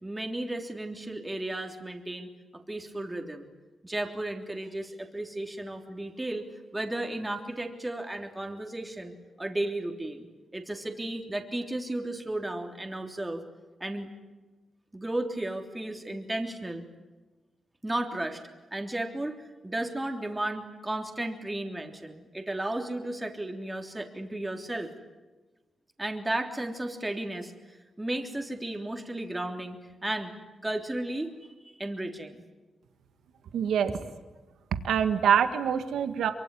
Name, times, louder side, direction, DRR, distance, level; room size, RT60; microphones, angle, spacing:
voice 1, 0.0-3.5 3.8-10.3 10.5-13.4 13.8-14.1 14.9-16.8 17.8-18.4 18.7-19.3 19.6-24.9 26.0-27.5 28.0-29.8 30.0-30.3 30.6-31.3 31.6-32.4, right 1 dB, 15° right, 4 dB, 3.4 m, -34 dB
voice 2, 33.5-34.0 34.7-36.3, right 8 dB, 90° right, 9 dB, 1.7 m, -25 dB
24.5 x 23.5 x 10.0 m, 1.2 s
cardioid pair, 80°, 0 cm